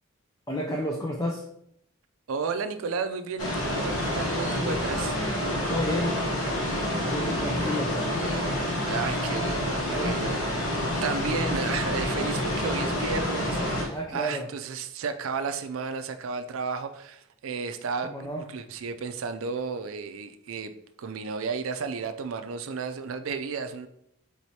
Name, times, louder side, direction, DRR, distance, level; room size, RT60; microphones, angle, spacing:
voice 1, 0.5-1.4 5.7-6.2 7.1-8.0 9.9-10.2 13.9-14.5 18.0-18.4, equal, 15° left, 0 dB, 0.4 m, -31 dB
voice 2, 2.3-5.2 8.9-10.5 10.8-18.1 18.4-20.7 21.0-23.9, right 5 dB, 80° right, 9 dB, 0.4 m, -33 dB
sound 1, 3.4-13.9, left 1 dB, 80° left, 1.2 m, -28 dB
4.6 x 4.1 x 2.8 m, 0.75 s
head